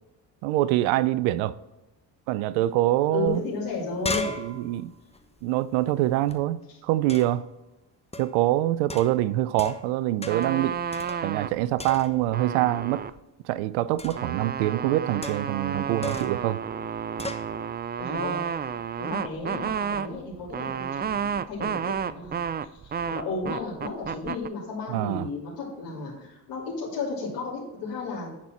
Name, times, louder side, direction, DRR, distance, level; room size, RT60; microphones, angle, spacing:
voice 1, 0.4-1.6 2.3-3.4 4.4-4.9 5.4-7.4 8.2-10.8 11.2-13.0 13.4-16.6 24.9-25.3, right 15 dB, 85° right, 0.5 m, -25 dB
voice 2, 3.1-4.3 18.0-18.4 19.0-28.3, left 4 dB, 85° left, 3.0 m, -34 dB
sound 1, 3.3-3.4 3.6-6.4 7.1-7.5 8.1-8.4 8.9-9.9 10.2-10.6 10.9-11.5 11.8-12.4 14.0-14.3 15.2-15.6 16.0-16.4 17.2-17.5, left 2 dB, 15° left, 1.0 m, -36 dB
sound 2, 10.3-11.6 12.1-13.2 14.0-24.5, right 7 dB, 25° right, 0.3 m, -31 dB
10.5 x 4.3 x 4.5 m
supercardioid pair, 65°, 47 cm